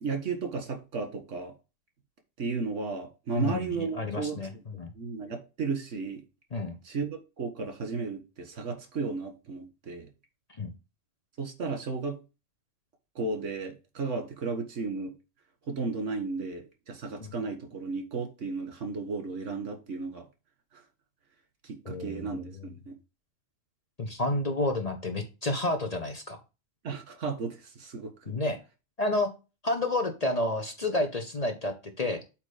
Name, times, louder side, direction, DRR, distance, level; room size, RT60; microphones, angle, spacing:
voice 1, 0.0-1.5 2.4-4.4 5.0-6.2 6.8-10.1 11.4-12.2 13.2-15.1 15.7-20.3 20.7-20.8 21.6-22.9 26.8-28.1, right 4 dB, 75° right, 5 dB, 1.9 m, -34 dB
voice 2, 3.3-4.9 6.5-6.8 10.5-10.7 17.2-17.3 21.8-22.4 24.0-26.4 28.3-28.6 29.0-29.3 29.6-32.2, left 2 dB, 35° left, 5 dB, 0.8 m, -30 dB
8.0 x 3.0 x 5.0 m, 0.29 s
omnidirectional pair, 1.3 m